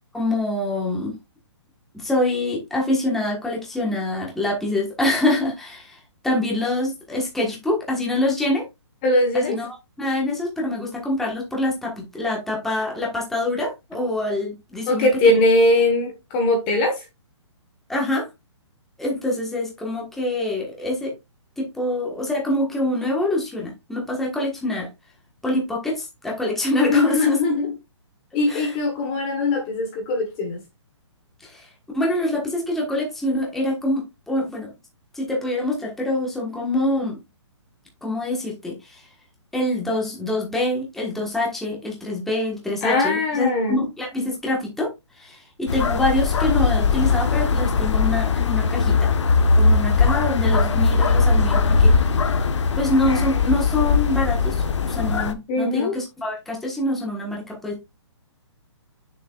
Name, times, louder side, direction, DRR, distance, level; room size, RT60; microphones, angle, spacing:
voice 1, 0.1-1.2 1.9-8.7 9.3-15.4 17.9-18.3 19.0-21.1 21.6-24.9 25.4-27.4 28.5-28.7 31.4-31.7 31.9-34.7 35.1-37.2 38.0-39.1 39.5-49.1 49.5-51.9 52.2-52.3 52.8-57.8, left 1 dB, ahead, 1.4 m, -25 dB
voice 2, 9.0-9.6 14.9-17.0 26.9-27.7 28.3-30.6 42.8-43.8 55.5-56.0, left 2 dB, 20° left, 1.3 m, -20 dB
sound 1, 45.7-55.3, left 4 dB, 70° left, 1.2 m, -19 dB
8.2 x 6.8 x 2.4 m
hypercardioid pair, 175°, 15 cm